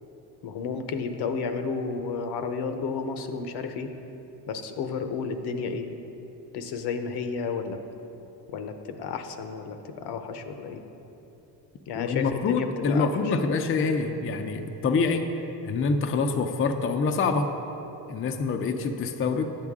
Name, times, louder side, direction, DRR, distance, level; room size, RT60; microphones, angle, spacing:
voice 1, 0.4-3.9 4.5-5.9 6.5-7.8 8.5-10.8 11.9-13.4, left 5 dB, 70° left, 7 dB, 0.9 m, -32 dB
voice 2, 11.9-15.3 15.6-17.5 18.1-19.6, left 4 dB, 30° left, 5 dB, 0.5 m, -26 dB
12.0 x 8.3 x 3.6 m, 3.0 s
cardioid pair, 125°, 42 cm